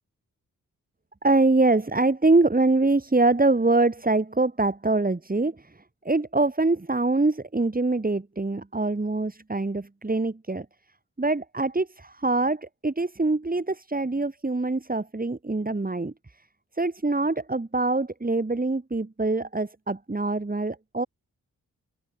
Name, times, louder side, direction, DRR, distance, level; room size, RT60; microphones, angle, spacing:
voice 1, 1.2-10.7 11.2-16.1 16.7-21.1, right 2 dB, 25° right, 2.6 m, -24 dB
open air
cardioid pair, 45°, 35 cm